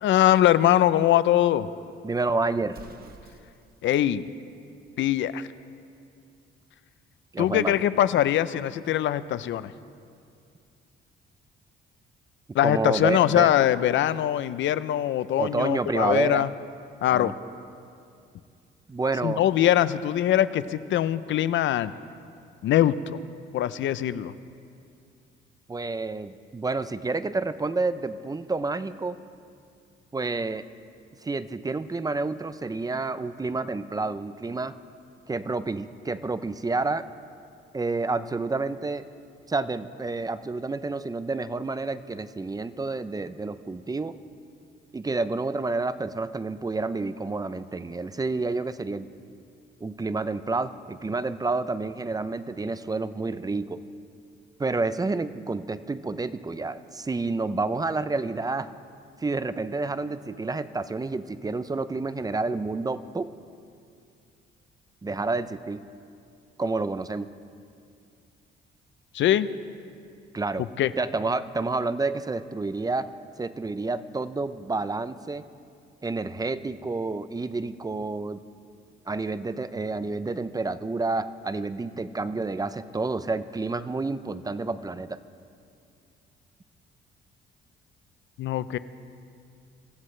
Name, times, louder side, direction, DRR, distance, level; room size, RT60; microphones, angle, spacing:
voice 1, 0.0-1.7 3.8-4.2 5.0-5.5 7.4-9.7 12.5-16.5 17.0-17.3 19.2-21.9 22.6-23.0 23.5-24.3 69.1-69.5 70.8-70.9 88.4-88.8, left 12 dB, 75° left, 15 dB, 0.6 m, -22 dB
voice 2, 2.0-2.8 7.3-7.8 12.6-13.5 15.4-16.5 17.1-17.3 18.9-19.5 25.7-29.2 30.1-30.7 31.2-34.7 35.3-37.1 37.7-39.1 39.5-44.2 44.9-49.1 49.8-53.8 54.6-58.7 59.2-63.3 65.0-65.9 66.6-67.3 70.3-70.7 71.0-73.1 73.4-75.4 76.0-78.4 79.1-85.2, right 3 dB, 20° right, 13 dB, 0.6 m, -29 dB
Explosion, 2.6-3.8, right 5 dB, 50° right, 1.1 m, -48 dB
25.5 x 15.5 x 3.3 m, 2.4 s
cardioid pair, 90°, 20 cm